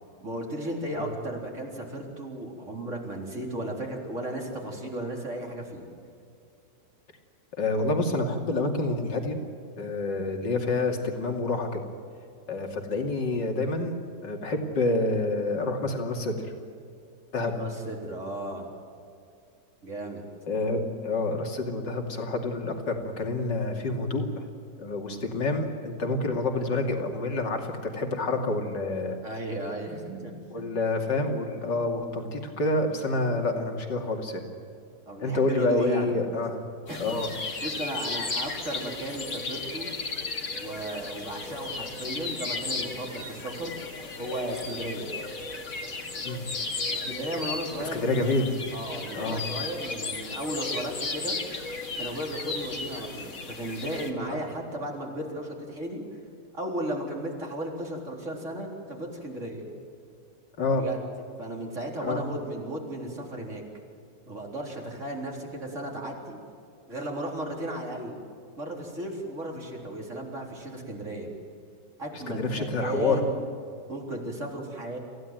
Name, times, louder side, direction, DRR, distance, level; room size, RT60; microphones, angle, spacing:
voice 1, 0.2-5.9 17.5-18.7 19.8-20.2 25.1-25.4 29.2-30.7 35.1-36.1 36.9-37.0 37.6-39.9 40.6-43.7 44.2-45.1 46.9-48.3 48.7-51.4 52.0-56.0 56.5-59.7 60.7-61.0 61.4-63.6 64.3-66.4 66.9-68.2 68.6-71.3 72.0-73.4 73.9-75.0, right 1 dB, 40° right, 0 dB, 4.3 m, -35 dB
voice 2, 7.6-9.4 9.8-11.8 12.5-16.5 17.3-17.5 20.5-24.5 24.8-29.2 30.5-34.4 35.2-36.6 37.0-37.3 46.2-46.4 47.8-48.5 49.1-49.4 60.6-60.8 62.0-62.2 72.1-73.2, left 2 dB, 75° left, 3 dB, 3.3 m, -28 dB
sound 1, 36.9-54.1, left 3 dB, 50° left, 2.6 m, -35 dB
26.5 x 16.0 x 9.2 m, 2.5 s
omnidirectional pair, 1.9 m